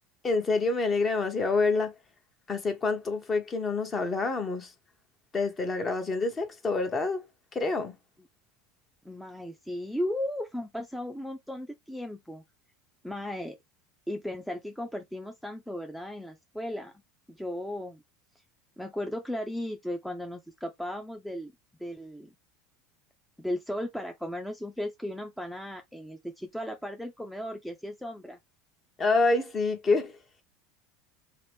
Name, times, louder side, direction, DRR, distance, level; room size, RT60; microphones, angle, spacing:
voice 1, 0.2-1.9 2.5-4.7 5.3-7.2 7.5-7.9 29.0-30.1, left 3 dB, 25° left, 0.9 m, -27 dB
voice 2, 9.0-12.4 13.0-13.6 14.1-16.9 17.3-18.0 18.8-21.5 21.8-22.3 23.4-28.4, left 1 dB, ahead, 0.5 m, -36 dB
2.9 x 2.9 x 3.3 m
supercardioid pair, 115°, 0 cm